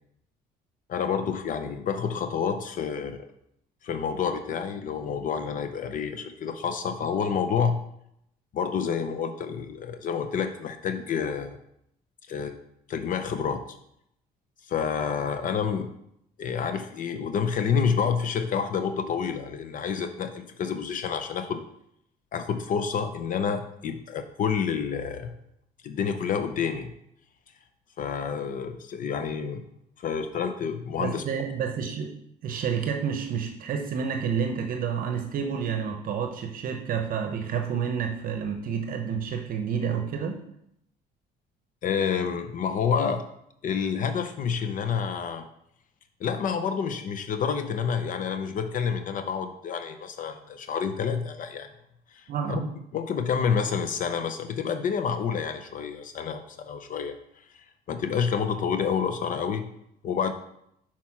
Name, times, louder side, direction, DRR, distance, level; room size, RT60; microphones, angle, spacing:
voice 1, 0.9-3.2 3.8-7.8 8.5-11.6 12.3-12.5 12.9-13.6 14.7-15.9 16.4-21.6 22.3-25.3 25.8-26.9 28.0-29.6 30.0-31.2 41.8-43.2 43.6-45.4 46.2-51.7 52.1-52.6 52.9-57.1 57.9-59.7 60.0-60.3, left 6 dB, 50° left, 8 dB, 0.6 m, -28 dB
voice 2, 31.0-32.1 32.4-40.4 52.3-52.7, right 7 dB, 55° right, 5 dB, 0.7 m, -29 dB
6.0 x 4.3 x 5.9 m, 0.76 s
cardioid pair, 110°, 17 cm